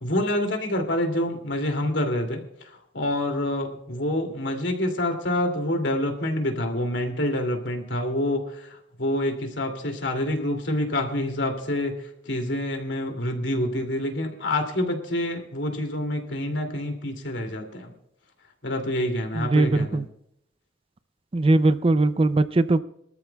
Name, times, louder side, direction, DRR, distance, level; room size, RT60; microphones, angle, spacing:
voice 1, 0.0-2.4 2.9-8.7 9.0-11.9 12.3-17.9 18.6-20.0, left 1 dB, 80° left, 3 dB, 2.7 m, -27 dB
voice 2, 19.4-20.0 21.3-22.8, right 2 dB, 30° right, 13 dB, 0.5 m, -20 dB
25.0 x 13.5 x 2.3 m, 0.75 s
head